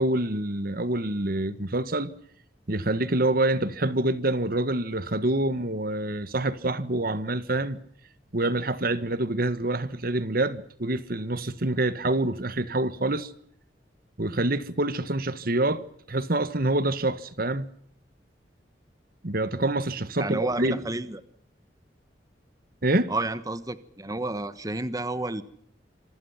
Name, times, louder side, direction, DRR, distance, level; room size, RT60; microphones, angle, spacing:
voice 1, 0.0-2.1 2.7-7.8 8.3-13.3 14.2-15.8 16.1-17.7 19.2-20.8 22.8-23.1, right 2 dB, 55° right, 1.5 m, -26 dB
voice 2, 20.2-21.2 23.1-25.4, right 2 dB, 20° right, 1.3 m, -30 dB
27.5 x 24.5 x 5.8 m
head